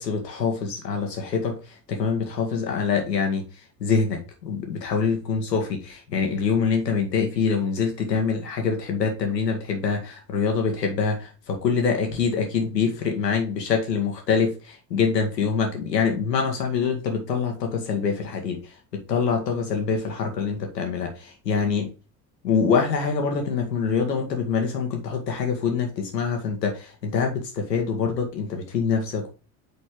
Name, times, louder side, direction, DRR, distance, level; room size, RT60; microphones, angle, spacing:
voice 1, 0.0-1.6 1.9-3.4 3.8-18.6 18.9-21.9 22.4-29.3, left 5 dB, 85° left, 1.9 m, -25 dB
7.6 x 4.4 x 3.8 m
hypercardioid pair, 65°, 48 cm